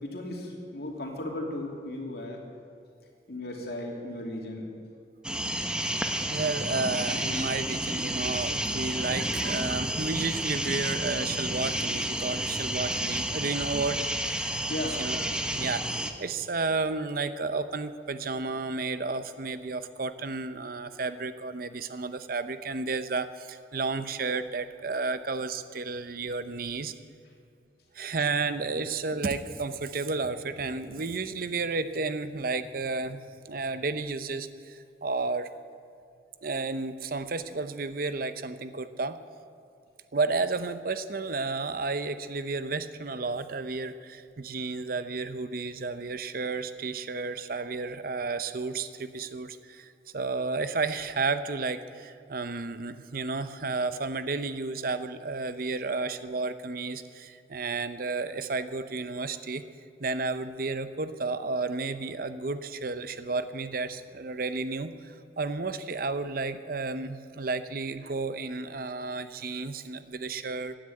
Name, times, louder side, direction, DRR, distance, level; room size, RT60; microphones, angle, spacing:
voice 1, 0.0-2.4 3.3-4.7 14.7-15.0, left 1 dB, 60° left, 0 dB, 2.8 m, -35 dB
sound 1, 5.2-16.1, right 1 dB, 5° right, 0.9 m, -31 dB
voice 2, 6.3-14.1 14.3-14.6 15.0-26.9 27.9-33.2 33.5-35.5 36.4-39.2 40.1-59.6 60.0-70.8, right 3 dB, 55° right, 11 dB, 0.7 m, -32 dB
16.0 x 10.0 x 8.7 m, 2.4 s
head